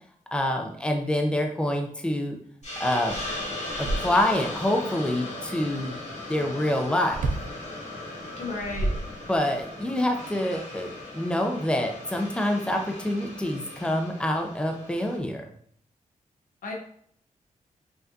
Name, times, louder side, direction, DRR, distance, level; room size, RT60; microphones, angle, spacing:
voice 1, 0.3-2.4 2.8-3.3 3.8-6.0 6.3-7.2 9.3-15.4, left 1 dB, 5° left, 3 dB, 0.6 m, -26 dB
Hiss, 2.6-15.2, left 2 dB, 60° left, 1.6 m, -38 dB
sound 1, 2.6-2.7 3.0-4.6 7.1-7.6 8.4-9.6, right 2 dB, 75° right, 0.5 m, -31 dB
voice 2, 8.4-8.9 16.6-16.7, left 3 dB, 85° left, 0 dB, 1.1 m, -33 dB
5.7 x 2.4 x 2.8 m, 0.63 s
cardioid pair, 75°, 13 cm